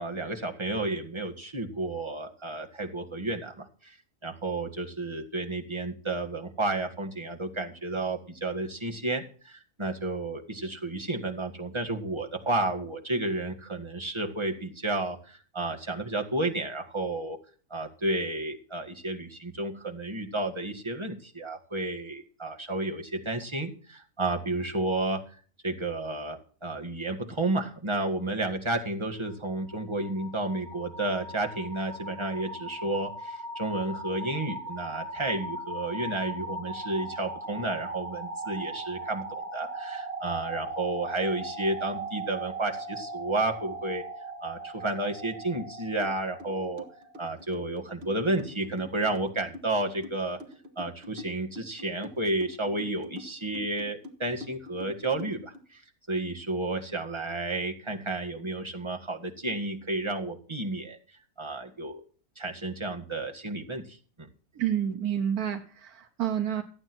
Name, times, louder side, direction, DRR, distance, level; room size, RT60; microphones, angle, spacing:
voice 1, 0.0-4.0 4.2-17.4 17.7-25.2 25.6-44.0 44.4-46.8 47.2-50.4 50.8-55.5 56.1-61.0 61.4-62.0 62.4-64.3, right 2 dB, 20° right, 2 dB, 1.8 m, -31 dB
sound 1, 29.3-47.2, right 2 dB, 65° right, 2.4 m, -39 dB
sound 2, 46.0-46.1 46.4-55.6, left 2 dB, 45° right, 1.9 m, -45 dB
voice 2, 64.6-66.6, right 9 dB, 80° right, 5 dB, 1.6 m, -29 dB
14.5 x 9.0 x 6.1 m, 0.41 s
omnidirectional pair, 1.6 m